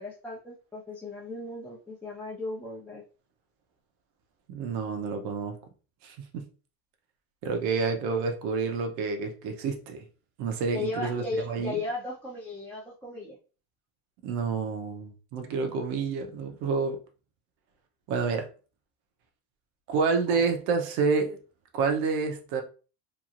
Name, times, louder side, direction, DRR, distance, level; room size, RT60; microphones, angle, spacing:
voice 1, 0.0-3.0 10.7-13.3 20.3-20.5, left 3 dB, 5° left, 0.7 m, -36 dB
voice 2, 4.5-5.6 6.0-6.5 7.4-10.0 10.4-11.7 14.2-17.0 18.1-18.5 19.9-21.4 21.7-22.6, right 5 dB, 65° right, 0.8 m, -28 dB
3.1 x 2.6 x 2.5 m
supercardioid pair, 115°, 32 cm